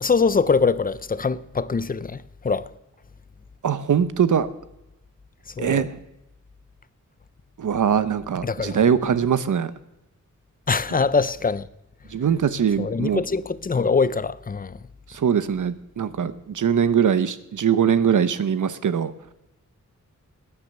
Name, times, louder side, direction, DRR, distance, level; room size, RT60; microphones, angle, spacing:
voice 1, 0.0-2.7 5.6-5.9 8.4-8.8 10.7-11.7 12.8-14.8, left 4 dB, 30° left, 0.5 m, -23 dB
voice 2, 3.6-4.5 5.6-6.0 7.6-9.7 12.1-13.2 15.1-19.1, right 7 dB, 75° right, 1.0 m, -22 dB
18.0 x 9.9 x 6.7 m
wide cardioid pair, 160°, 31 cm